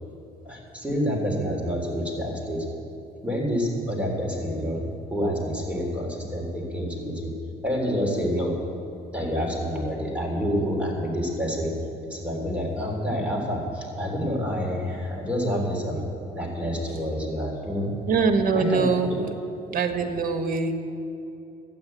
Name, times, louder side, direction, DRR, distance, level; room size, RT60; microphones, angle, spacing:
voice 1, 0.4-2.6 3.2-4.8 5.1-7.3 7.6-8.5 9.1-11.7 12.1-16.0 16.3-17.9 18.5-18.8, equal, 5° right, -1 dB, 3.4 m, -28 dB
voice 2, 18.1-19.3 19.7-20.7, right 4 dB, 55° right, 7 dB, 1.5 m, -23 dB
12.5 x 9.4 x 9.2 m, 2.9 s
cardioid pair, 110°, 17 cm